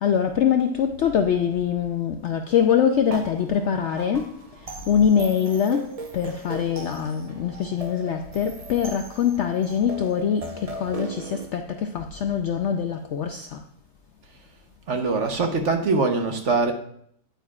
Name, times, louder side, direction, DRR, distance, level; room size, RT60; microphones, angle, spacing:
voice 1, 0.0-4.3 4.9-13.6, left 8 dB, 70° left, 0.7 m, -23 dB
sound 1, 3.1-11.4, right 2 dB, 30° right, 0.7 m, -38 dB
voice 2, 14.9-16.7, right 3 dB, 55° right, 1.1 m, -23 dB
9.2 x 9.0 x 2.4 m
omnidirectional pair, 1.7 m